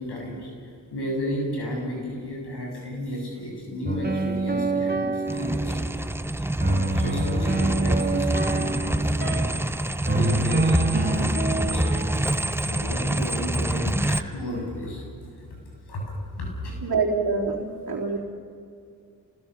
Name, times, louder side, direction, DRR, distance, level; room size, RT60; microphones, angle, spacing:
voice 1, 0.0-6.1 6.3-9.5 10.1-12.2 12.6-15.0 15.5-15.6 15.9-16.8, equal, 85° left, -1 dB, 7.6 m, -33 dB
sound 1, 3.9-5.9 6.6-9.6 10.1-12.5, right 2 dB, 25° right, 1.6 m, -27 dB
sound 2, 5.3-14.2, right 1 dB, 5° right, 0.9 m, -26 dB
voice 2, 16.8-18.2, right 4 dB, 65° right, -2 dB, 3.7 m, -25 dB
28.0 x 20.0 x 6.2 m, 2.3 s
supercardioid pair, 40°, 39 cm